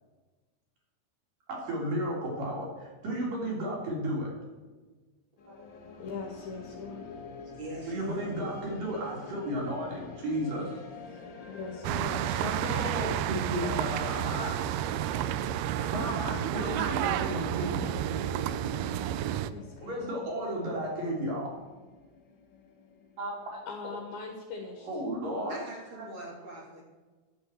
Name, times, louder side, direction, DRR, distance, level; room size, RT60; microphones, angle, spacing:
voice 1, 1.5-4.3 5.5-5.6 7.9-10.8 12.1-14.6 15.7-18.2 19.8-21.5 23.2-23.6 24.8-25.6 26.0-26.1, right 1 dB, 60° right, -2 dB, 4.8 m, -34 dB
sound 1, 5.4-23.6, left 3 dB, 60° left, 1.2 m, -47 dB
voice 2, 6.0-7.2 11.5-12.2 19.5-20.1 23.7-24.9, left 4 dB, 75° left, 1 dB, 3.1 m, -41 dB
voice 3, 7.6-8.3 25.5-26.8, right 1 dB, 35° right, -1 dB, 3.2 m, -42 dB
sound 2, 11.8-19.5, right 11 dB, 85° right, 2.5 m, -31 dB
11.5 x 7.1 x 7.6 m, 1.3 s
omnidirectional pair, 4.4 m